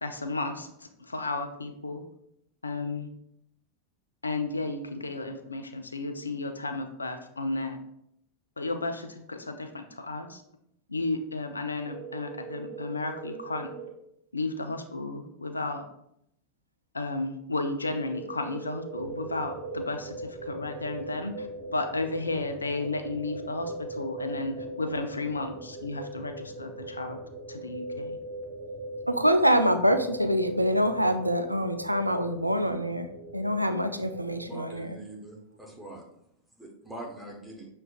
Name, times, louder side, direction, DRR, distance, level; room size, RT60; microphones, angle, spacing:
voice 1, 0.0-2.0 2.6-3.1 4.2-7.8 8.6-10.4 10.9-13.7 14.3-15.8 16.9-21.5 21.7-27.2 27.5-28.2, left 2 dB, 80° left, 7 dB, 0.4 m, -33 dB
sound 1, 11.9-13.9 17.9-19.9, right 7 dB, 55° right, 0.8 m, -41 dB
sound 2, 18.9-34.5, right 1 dB, 40° right, 1.3 m, -40 dB
voice 2, 29.1-33.1 33.3-35.0, equal, 90° right, 9 dB, 0.3 m, -25 dB
voice 3, 34.4-36.0 36.6-37.7, right 1 dB, 5° right, -2 dB, 1.2 m, -43 dB
6.1 x 3.3 x 2.4 m, 0.76 s
figure-of-eight pair, 85°, 0 cm